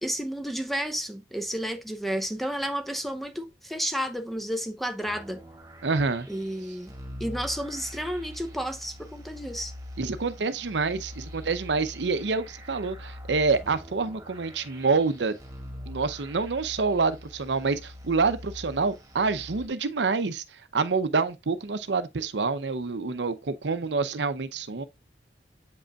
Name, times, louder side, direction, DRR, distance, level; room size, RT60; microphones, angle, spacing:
voice 1, 0.0-5.4 6.3-6.9 7.2-9.7, equal, ahead, 0.8 m, -31 dB
sound 1, 5.1-19.7, left 1 dB, 20° right, 1.8 m, -43 dB
voice 2, 5.8-6.3 10.0-15.4 15.9-20.4 20.7-24.8, right 4 dB, 85° right, 0.7 m, -27 dB
7.7 x 5.2 x 2.4 m
head